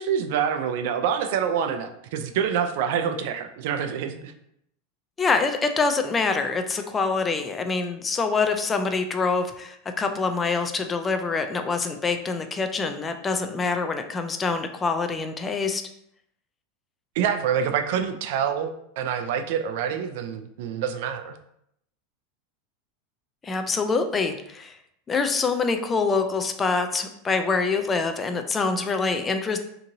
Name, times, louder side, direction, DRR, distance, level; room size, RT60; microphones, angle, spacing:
voice 1, 0.0-4.3 17.2-21.3, right 8 dB, 70° right, 8 dB, 0.3 m, -26 dB
voice 2, 5.2-15.8 23.4-24.8 25.1-29.6, left 4 dB, 20° left, 7 dB, 0.3 m, -25 dB
2.8 x 2.6 x 2.6 m, 0.74 s
supercardioid pair, 115°, 0 cm